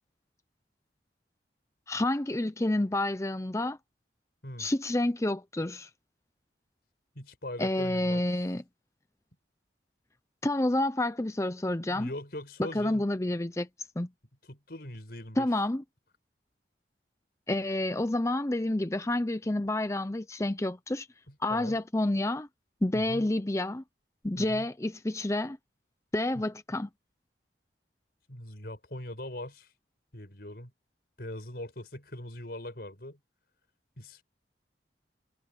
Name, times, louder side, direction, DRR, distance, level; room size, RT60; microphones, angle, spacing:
voice 1, 1.9-3.8 4.6-5.9 7.6-8.6 10.4-12.1 12.7-13.7 14.0-14.1 15.4-15.8 17.5-21.1 21.4-22.5 22.8-23.8 24.2-25.6 26.1-26.9, left 1 dB, 15° left, 0.6 m, -29 dB
voice 2, 7.2-8.2 11.9-13.0 14.5-15.5 21.3-21.8 22.9-23.3 24.4-24.7 28.3-29.7 30.1-30.7 31.2-33.2 34.0-34.2, left 1 dB, 55° left, 5.5 m, -41 dB
head